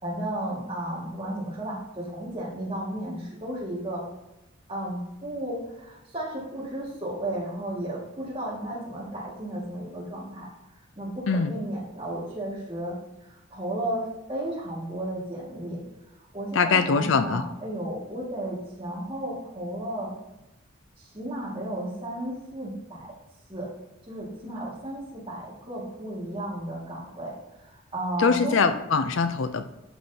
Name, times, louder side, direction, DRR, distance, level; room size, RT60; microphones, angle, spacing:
voice 1, 0.0-4.0 4.7-10.5 11.0-13.0 13.2-15.8 16.3-20.1 21.0-23.1 23.5-23.7 24.1-27.3 27.7-28.7, right 1 dB, 25° right, -5 dB, 2.1 m, -33 dB
voice 2, 16.5-17.4 28.2-29.6, left 5 dB, 60° left, 10 dB, 0.4 m, -23 dB
11.5 x 6.1 x 2.8 m, 0.94 s
head